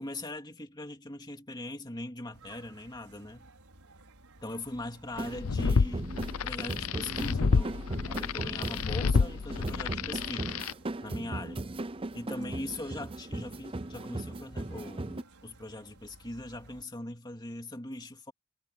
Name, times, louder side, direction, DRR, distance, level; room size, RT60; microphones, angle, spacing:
voice 1, 0.0-3.5 4.4-6.2 6.4-10.6 11.0-11.6 12.1-18.3, left 1 dB, 20° left, 2.5 m, -41 dB
sound 1, 2.3-16.9, right 2 dB, 90° right, 5.3 m, -56 dB
sound 2, 5.1-15.2, right 2 dB, 25° right, 0.6 m, -38 dB
sound 3, 5.2-10.7, left 5 dB, 80° left, 0.6 m, -29 dB
head